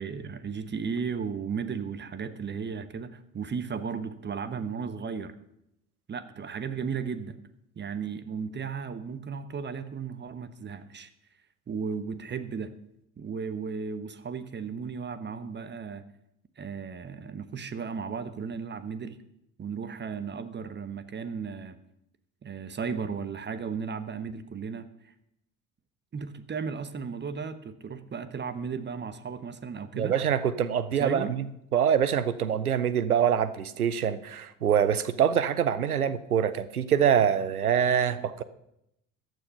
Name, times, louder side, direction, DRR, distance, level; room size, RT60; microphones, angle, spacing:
voice 1, 0.0-5.3 6.1-7.4 7.8-11.1 11.7-12.7 13.2-16.0 16.6-19.2 19.6-21.8 22.4-25.1 26.1-30.2 30.9-31.3, right 6 dB, 25° right, 13 dB, 1.1 m, -35 dB
voice 2, 29.9-31.5 31.7-38.4, right 8 dB, 90° right, 15 dB, 0.6 m, -25 dB
14.5 x 9.2 x 5.6 m, 0.81 s
figure-of-eight pair, 60°, 43 cm